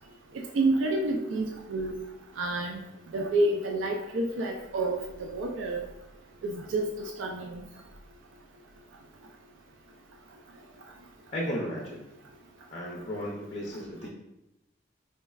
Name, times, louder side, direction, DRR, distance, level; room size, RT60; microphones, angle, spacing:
voice 1, 0.3-1.9 2.4-2.8 3.1-5.8 6.4-7.6, right 2 dB, 75° right, 2 dB, 0.4 m, -29 dB
voice 2, 11.3-12.0 12.7-14.1, equal, 35° left, -1 dB, 0.5 m, -34 dB
4.3 x 3.1 x 2.3 m, 0.90 s
head